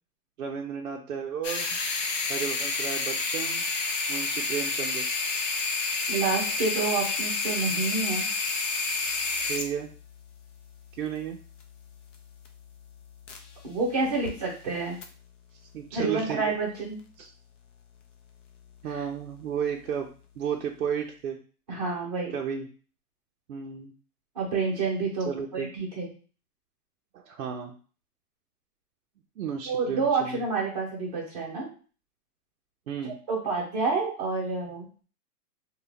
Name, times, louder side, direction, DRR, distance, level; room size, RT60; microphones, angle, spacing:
voice 1, 0.4-1.8 2.3-3.6 4.1-5.0 9.5-9.9 11.0-11.4 15.7-16.6 17.2-17.3 18.8-20.1 20.4-21.4 22.3-22.7 23.5-23.9 25.3-25.7 27.1-27.7 29.4-30.4 32.9-33.2, right 7 dB, 65° right, 1 dB, 0.5 m, -33 dB
sound 1, 1.4-13.7 14.0-14.3 15.0-15.1, left 4 dB, 50° left, 0.5 m, -30 dB
voice 2, 6.1-8.3 13.6-15.0 15.9-17.0 18.9-19.0 21.7-22.4 24.3-26.1 29.7-31.7 33.0-34.9, right 4 dB, 25° right, -4 dB, 0.8 m, -29 dB
2.8 x 2.2 x 3.3 m, 0.39 s
hypercardioid pair, 180°, 47 cm